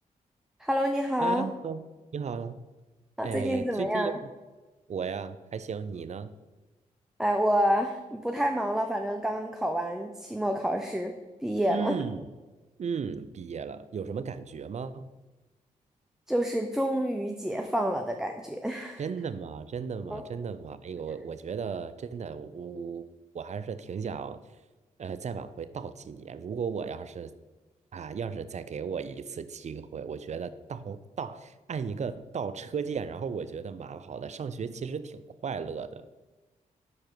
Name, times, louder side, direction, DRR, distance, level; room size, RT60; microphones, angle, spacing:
voice 1, 0.6-1.5 3.2-4.1 7.2-11.1 11.4-12.0 16.3-19.0 20.1-20.2, equal, 5° right, 4 dB, 0.6 m, -28 dB
voice 2, 1.2-1.8 2.1-2.6 3.2-4.3 4.9-6.3 11.7-12.3 12.8-15.1 19.0-23.0 23.3-24.4 25.0-27.3 27.9-36.1, right 6 dB, 50° right, 13 dB, 0.4 m, -35 dB
5.9 x 4.7 x 4.5 m, 1.2 s
supercardioid pair, 45°, 15 cm